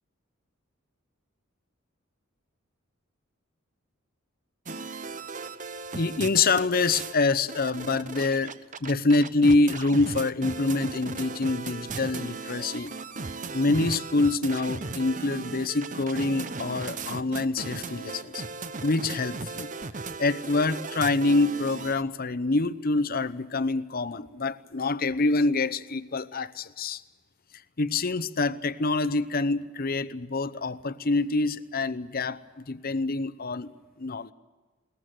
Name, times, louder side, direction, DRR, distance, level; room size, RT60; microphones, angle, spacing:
sound 1, 4.7-7.2 7.5-22.0, right 4 dB, 40° right, 0.9 m, -37 dB
voice 1, 5.9-12.9 13.5-18.4 18.8-19.7 20.2-27.0 27.8-33.7 34.0-34.3, left 3 dB, 45° left, 14 dB, 0.8 m, -26 dB
21.5 x 20.0 x 7.9 m, 1.3 s
head